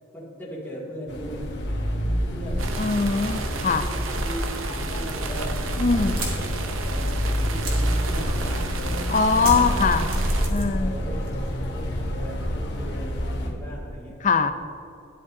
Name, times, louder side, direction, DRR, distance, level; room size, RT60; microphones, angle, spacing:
voice 1, 0.1-3.0 3.4-3.9 4.2-9.8 10.4-14.3, equal, 10° left, -7 dB, 2.0 m, -39 dB
sound 1, 1.1-13.5, equal, 55° left, 1.4 m, -27 dB
sound 2, 2.6-10.5, right 4 dB, 75° right, 0.7 m, -34 dB
voice 2, 2.8-3.8 5.8-6.2 9.1-10.1 10.5-10.9 14.2-14.5, left 4 dB, 35° left, 9 dB, 0.5 m, -22 dB
sound 3, 6.2-8.7 9.4-10.9 11.2-11.8, right 1 dB, 45° right, 1.9 m, -33 dB
12.5 x 10.5 x 2.7 m, 2.7 s
head